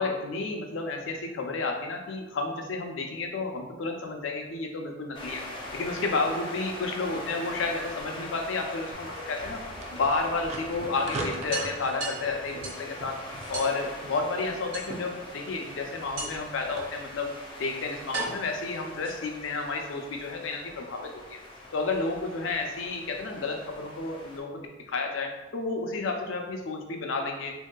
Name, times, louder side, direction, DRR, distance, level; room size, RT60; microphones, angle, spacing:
voice 1, 0.0-5.4 5.7-9.6 9.9-13.2 13.5-17.3 17.6-21.4 21.7-24.6 24.9-27.7, left 3 dB, 80° left, 3 dB, 0.4 m, -31 dB
sound 1, 5.1-24.4, left 1 dB, 25° left, 0.5 m, -42 dB
sound 2, 7.5-8.5 10.0-10.1 10.5-10.6 10.9-11.0 11.5-12.9 13.5-13.8 14.7-15.3 16.2-16.6 17.4-17.5 18.1-19.5, right 3 dB, 60° right, 0.9 m, -37 dB
sound 3, 8.9-16.8, right 2 dB, 35° right, 0.3 m, -42 dB
3.2 x 2.7 x 2.2 m, 1.1 s
head